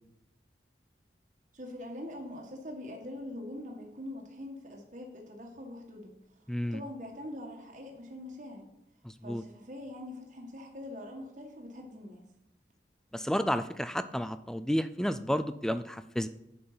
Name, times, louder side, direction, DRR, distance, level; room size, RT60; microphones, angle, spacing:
voice 1, 1.5-6.1 6.6-8.7 9.2-12.2, left 1 dB, 45° right, 0 dB, 1.9 m, -43 dB
voice 2, 6.5-6.8 9.0-9.4 13.1-16.3, equal, 5° left, 12 dB, 0.4 m, -31 dB
9.7 x 7.9 x 5.1 m, 0.84 s
head